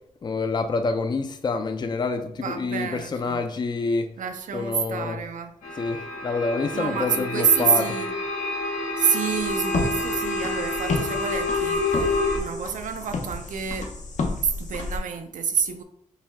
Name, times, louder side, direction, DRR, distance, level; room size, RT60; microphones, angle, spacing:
voice 1, 0.2-4.1 4.5-5.2 5.7-8.0, left 3 dB, 35° left, 0.3 m, -27 dB
voice 2, 2.4-3.4 4.2-5.5 6.7-8.1 9.0-12.0 12.4-13.9 14.4-15.8, right 7 dB, 85° right, 0.4 m, -27 dB
sound 1, 5.6-12.4, left 2 dB, 85° left, 1.2 m, -28 dB
sound 2, 9.3-15.0, left 3 dB, 70° left, 0.7 m, -31 dB
5.5 x 2.2 x 3.5 m
wide cardioid pair, 115°, 13 cm